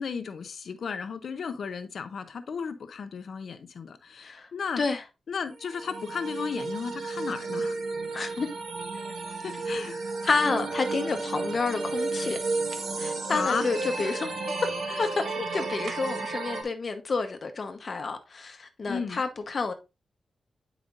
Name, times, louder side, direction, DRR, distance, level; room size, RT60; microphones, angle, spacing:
voice 1, 0.0-4.8 5.3-7.8 9.4-10.0 13.3-13.7 14.0-14.1 14.9-15.0 18.9-19.2, left 6 dB, 65° left, 0.6 m, -34 dB
sound 1, 5.6-16.6, right 3 dB, 65° right, 1.6 m, -32 dB
voice 2, 8.1-8.5 10.2-12.4 13.0-14.3 15.0-15.1 15.3-19.7, left 4 dB, 40° left, 0.9 m, -29 dB
sound 2, 12.7-13.0 15.8-16.3, right 5 dB, 85° right, 0.9 m, -44 dB
8.8 x 4.9 x 2.5 m
wide cardioid pair, 155°, 0 cm